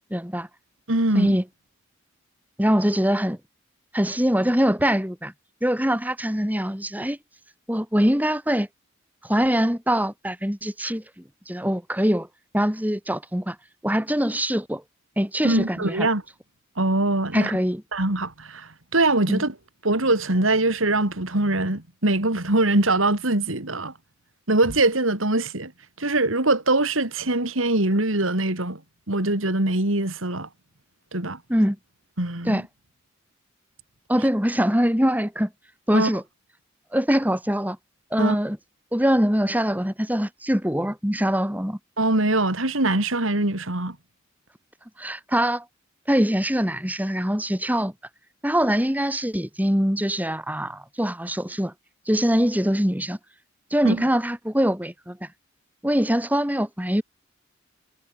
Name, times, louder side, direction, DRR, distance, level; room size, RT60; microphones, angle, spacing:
voice 1, 0.1-0.5 1.1-1.4 2.6-3.4 3.9-5.3 5.6-7.2 7.7-8.7 9.2-11.0 11.5-12.3 12.5-13.6 13.8-14.8 15.2-16.1 17.3-17.8 19.3-19.4 31.5-31.8 32.5-32.6 34.1-35.5 35.9-36.2 36.9-37.8 38.1-38.6 38.9-41.8 45.0-45.7 46.1-47.9 48.4-51.7 52.1-53.2 53.7-55.3 55.8-57.0, equal, 10° right, 3.6 m, -23 dB
voice 2, 0.9-1.4 15.4-16.2 16.8-17.6 17.9-19.5 19.8-23.9 24.5-25.7 26.0-28.8 29.1-30.5 31.1-31.4 32.2-32.6 35.9-36.1 38.2-38.4 42.0-44.0 53.8-54.1, right 2 dB, 85° right, 3.8 m, -23 dB
head